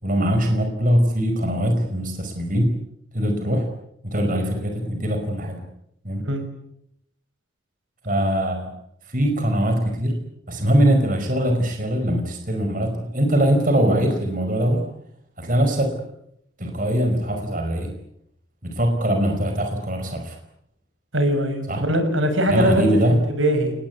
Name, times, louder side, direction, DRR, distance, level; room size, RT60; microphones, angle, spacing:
voice 1, 0.0-2.8 3.1-3.7 4.0-5.6 6.0-6.2 8.0-8.7 9.0-10.2 10.5-14.9 15.4-16.0 16.6-17.9 18.6-20.4 21.7-21.8 22.5-23.2, equal, 40° right, 5 dB, 5.1 m, -22 dB
voice 2, 21.1-23.7, equal, 80° right, 8 dB, 6.5 m, -21 dB
28.0 x 20.5 x 9.5 m, 0.76 s
head